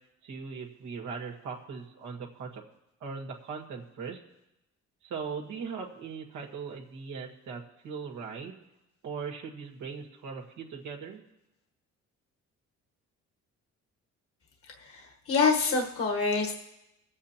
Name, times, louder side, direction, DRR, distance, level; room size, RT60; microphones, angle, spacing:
voice 1, 0.2-2.6 3.0-4.2 5.0-8.5 9.0-11.2, right 5 dB, 80° right, -1 dB, 1.9 m, -39 dB
voice 2, 15.3-16.5, left 4 dB, 50° left, 1 dB, 1.4 m, -25 dB
21.5 x 8.1 x 2.9 m, 0.89 s
cardioid pair, 90°, 30 cm